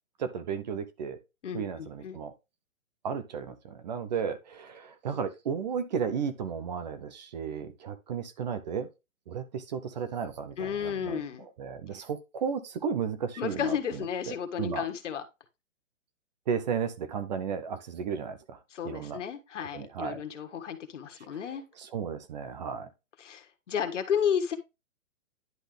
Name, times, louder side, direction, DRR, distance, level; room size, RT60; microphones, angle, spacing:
voice 1, 0.2-1.2 1.5-2.3 3.0-8.9 9.3-11.2 11.6-13.7 14.3-14.8 16.5-18.6 18.8-19.2 19.7-20.2 21.9-22.9, right 6 dB, 35° right, 0.7 m, -34 dB
voice 2, 1.4-2.2 10.6-11.5 13.4-15.2 18.7-21.6 23.2-24.6, left 8 dB, 65° left, 1.7 m, -32 dB
10.5 x 3.8 x 3.3 m
hypercardioid pair, 155°, 39 cm